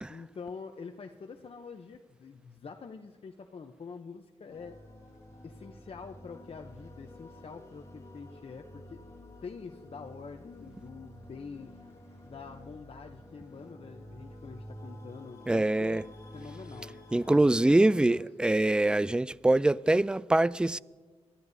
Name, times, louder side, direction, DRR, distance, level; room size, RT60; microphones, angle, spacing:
voice 1, 0.1-4.8 5.4-9.0 9.4-12.0 12.2-16.0 16.3-18.2, left 5 dB, 55° left, 0.7 m, -46 dB
sound 1, 4.5-17.4, equal, 25° left, 3.5 m, -50 dB
voice 2, 15.5-16.0 17.1-20.8, right 2 dB, 10° right, 0.3 m, -24 dB
24.0 x 14.0 x 2.7 m
cardioid pair, 70°, 12 cm